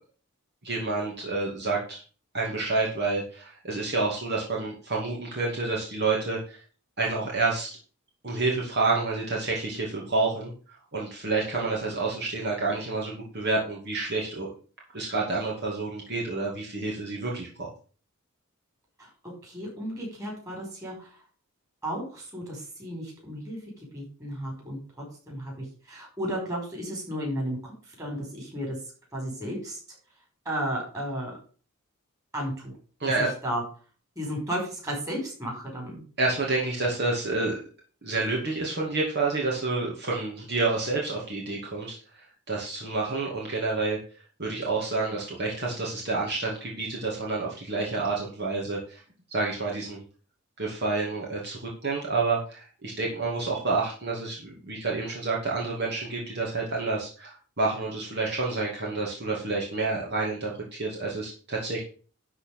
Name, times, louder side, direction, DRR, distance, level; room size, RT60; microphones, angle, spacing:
voice 1, 0.6-2.0 2.3-6.6 7.0-7.8 8.2-10.5 10.9-14.5 14.9-17.7 33.0-33.3 36.2-37.6 38.0-42.0 42.5-44.0 44.4-49.0 49.3-50.0 50.6-61.8, right 3 dB, 50° right, -3 dB, 2.6 m, -29 dB
voice 2, 19.4-21.1 21.8-23.6 23.9-27.7 28.0-28.8 29.1-29.8 30.5-31.4 32.3-32.7 33.2-33.6 34.2-36.0, equal, 15° right, -2 dB, 5.3 m, -33 dB
12.0 x 4.4 x 6.7 m, 0.39 s
head